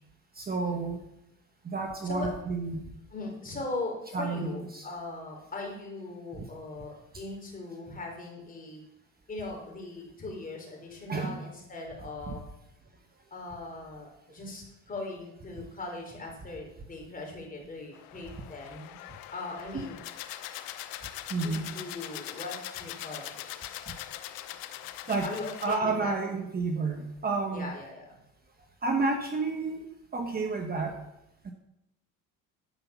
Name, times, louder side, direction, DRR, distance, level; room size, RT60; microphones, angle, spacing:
voice 1, 0.3-1.0 1.6-2.8 4.1-4.9 11.1-11.4 12.3-12.4 19.7-19.9 21.3-21.7 25.1-25.3 25.6-27.7 28.8-29.8 30.1-31.0 31.4-31.5, right 3 dB, 25° right, 3 dB, 1.1 m, -30 dB
voice 2, 3.1-8.8 9.3-12.4 13.3-18.9 19.3-20.0 21.4-23.8 25.2-26.2 27.5-28.2, left 2 dB, 25° left, 0 dB, 3.8 m, -40 dB
sound 1, 17.9-25.8, left 13 dB, 75° left, 0.9 m, -42 dB
11.5 x 5.7 x 7.0 m, 0.87 s
cardioid pair, 110°, 35 cm